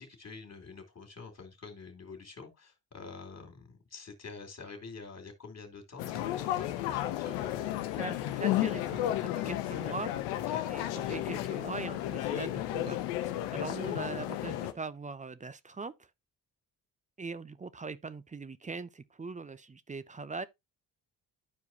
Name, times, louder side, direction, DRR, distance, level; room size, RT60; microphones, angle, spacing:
voice 1, 0.0-7.9 10.5-10.7, left 4 dB, 35° left, 2.7 m, -47 dB
sound 1, 6.0-14.7, left 13 dB, 85° left, 0.8 m, -33 dB
voice 2, 7.9-10.1 10.7-13.0 13.5-15.9 17.2-20.5, right 4 dB, 15° right, 0.5 m, -41 dB
12.0 x 4.7 x 2.7 m
hypercardioid pair, 45°, 44 cm